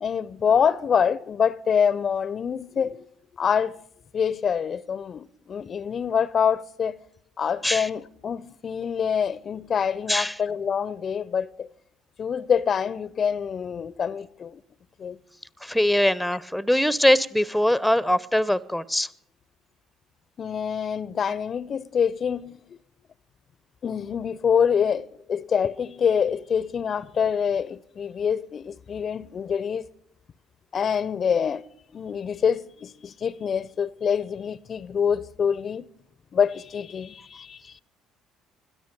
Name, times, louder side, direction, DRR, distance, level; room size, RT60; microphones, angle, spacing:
voice 1, 0.0-3.1 3.4-3.8 4.1-7.0 7.4-11.7 12.2-14.6 15.0-15.2 20.4-22.5 23.8-29.9 30.7-31.6 31.9-35.8 36.3-37.6, left 7 dB, 45° left, 0.5 m, -25 dB
voice 2, 15.6-19.1, left 1 dB, ahead, 0.6 m, -22 dB
20.5 x 13.5 x 5.2 m
hypercardioid pair, 55°, 0 cm